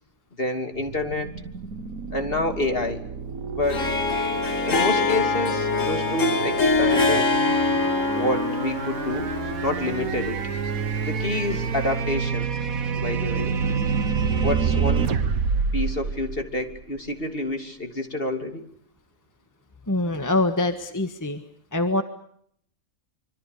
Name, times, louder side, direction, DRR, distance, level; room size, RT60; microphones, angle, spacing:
voice 1, 0.4-1.3 2.1-3.1 3.5-3.9 4.7-7.3 8.1-9.3 9.6-10.4 11.0-12.5 12.9-13.5 14.4-15.1 15.7-18.6, left 2 dB, 40° left, 6 dB, 3.2 m, -28 dB
sound 1, 0.8-17.0, right 6 dB, 80° right, 1.7 m, -28 dB
Harp, 3.6-11.9, left 3 dB, 65° left, 2.3 m, -25 dB
voice 2, 19.9-21.4 21.7-22.0, left 2 dB, 15° left, 7 dB, 1.6 m, -24 dB
26.5 x 25.0 x 6.8 m, 0.68 s
omnidirectional pair, 1.5 m